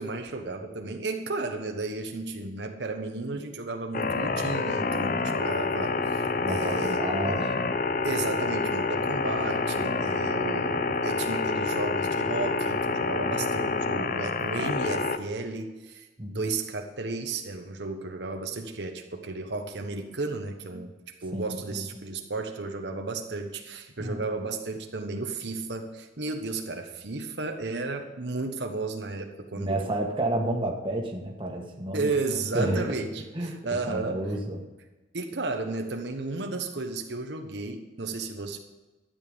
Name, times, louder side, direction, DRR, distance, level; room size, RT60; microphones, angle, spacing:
voice 1, 0.0-7.5 8.0-29.9 31.9-34.2 35.1-38.6, right 3 dB, 75° right, 4 dB, 1.1 m, -33 dB
sound 1, 3.9-15.2, left 4 dB, 45° left, 0.6 m, -28 dB
voice 2, 6.4-7.5 16.2-16.5 18.6-18.7 21.3-21.8 24.0-24.2 29.5-32.1 32.5-32.9 33.3-33.5 33.9-34.6, right 1 dB, 25° right, 1 dB, 1.6 m, -30 dB
12.5 x 9.1 x 5.2 m, 1.1 s
head